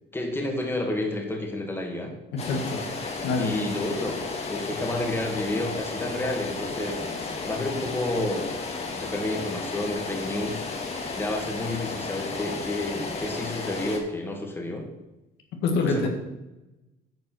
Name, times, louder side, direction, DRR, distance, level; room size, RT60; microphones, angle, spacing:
voice 1, 0.1-2.1 3.4-4.2 4.5-8.6 8.9-10.6 11.2-14.9 15.8-16.1, left 2 dB, 15° left, 1 dB, 2.1 m, -30 dB
voice 2, 2.3-2.8 3.2-3.6 15.6-16.1, left 3 dB, 85° left, 3 dB, 1.7 m, -25 dB
sound 1, 2.4-14.0, left 3 dB, 40° left, 1.8 m, -33 dB
9.1 x 5.2 x 6.4 m, 0.97 s
cardioid pair, 110°, 17 cm